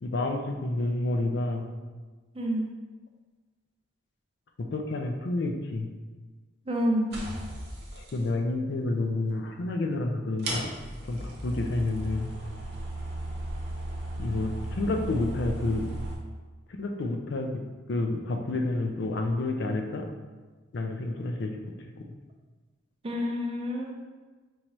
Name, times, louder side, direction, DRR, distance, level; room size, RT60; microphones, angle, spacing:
voice 1, 0.0-1.7 4.6-5.9 7.9-10.7 11.0-12.3 14.2-15.8 16.7-17.6 17.9-20.1 20.7-21.5 22.0-22.1, left 2 dB, 60° left, 4 dB, 0.4 m, -29 dB
voice 2, 2.3-2.7 6.7-7.2 23.0-23.9, equal, 30° right, 0 dB, 0.4 m, -28 dB
sound 1, 7.1-8.2 9.5-9.6 10.4-16.2, right 1 dB, 50° right, 0.8 m, -36 dB
4.6 x 2.8 x 3.0 m, 1.3 s
head